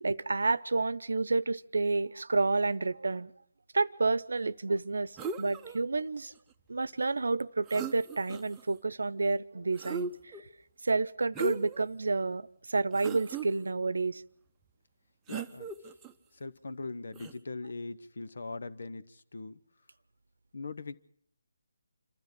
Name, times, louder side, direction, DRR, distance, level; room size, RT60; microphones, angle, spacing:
voice 1, 0.0-3.3 3.7-5.1 5.4-6.3 6.7-10.4 10.8-14.2, right 3 dB, 70° right, 19 dB, 0.8 m, -30 dB
sound 1, 5.2-5.8 7.4-7.5 7.7-8.6 9.8-10.4 11.3-11.9 12.3-12.4 12.9-13.5 15.3-16.1 17.1-17.3, right 4 dB, 10° right, 0.8 m, -37 dB
voice 2, 15.3-15.7 16.4-19.6 20.5-21.0, left 3 dB, 65° left, 13 dB, 1.1 m, -40 dB
27.0 x 13.0 x 7.8 m, 0.65 s
figure-of-eight pair, 155°, 0 cm